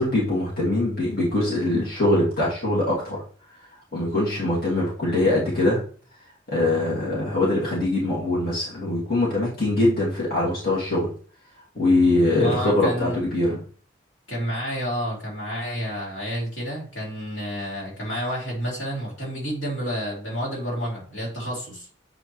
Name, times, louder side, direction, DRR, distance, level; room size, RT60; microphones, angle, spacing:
voice 1, 0.0-3.2 3.9-5.8 6.5-11.1 11.8-13.6, left 2 dB, 55° left, -7 dB, 2.4 m, -22 dB
voice 2, 12.4-13.2 14.3-21.8, equal, 80° left, -5 dB, 3.1 m, -30 dB
7.8 x 4.7 x 3.1 m, 0.43 s
head